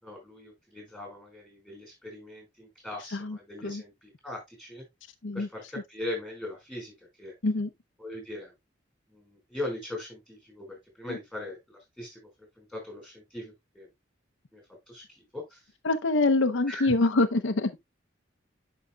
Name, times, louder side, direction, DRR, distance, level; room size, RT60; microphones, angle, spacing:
voice 1, 0.0-4.8 5.3-7.3 8.0-8.5 9.1-12.3 12.6-13.9 14.5-14.6 14.9-15.6 16.7-16.9, left 1 dB, ahead, 5.1 m, -40 dB
voice 2, 3.1-3.8 5.2-5.5 7.4-7.7 11.1-11.2 15.8-17.7, left 2 dB, 85° left, 0.7 m, -25 dB
10.5 x 5.6 x 2.3 m
head